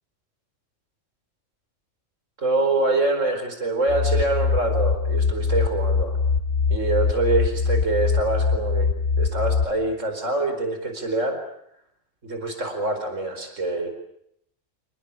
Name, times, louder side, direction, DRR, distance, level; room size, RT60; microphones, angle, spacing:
voice 1, 2.4-6.2 6.7-8.9 9.2-11.4 12.2-13.9, right 2 dB, 75° right, 7 dB, 4.9 m, -25 dB
sound 1, 3.9-9.6, left 5 dB, 85° left, 2.2 m, -23 dB
29.5 x 19.5 x 8.3 m, 0.73 s
omnidirectional pair, 1.3 m